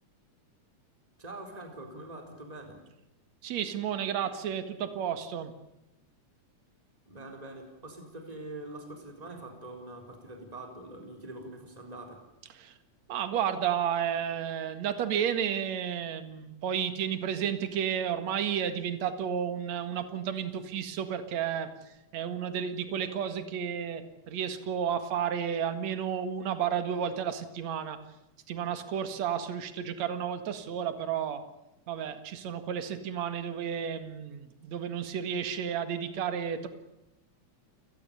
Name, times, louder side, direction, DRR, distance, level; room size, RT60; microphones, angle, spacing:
voice 1, 1.2-2.8 7.1-12.2, right 2 dB, 10° right, 3 dB, 4.1 m, -44 dB
voice 2, 3.4-5.5 12.6-12.7 13.1-21.7 22.1-28.0 28.5-31.4 31.9-36.7, right 8 dB, 65° right, 9 dB, 3.0 m, -32 dB
29.5 x 19.0 x 7.0 m, 0.95 s
omnidirectional pair, 3.5 m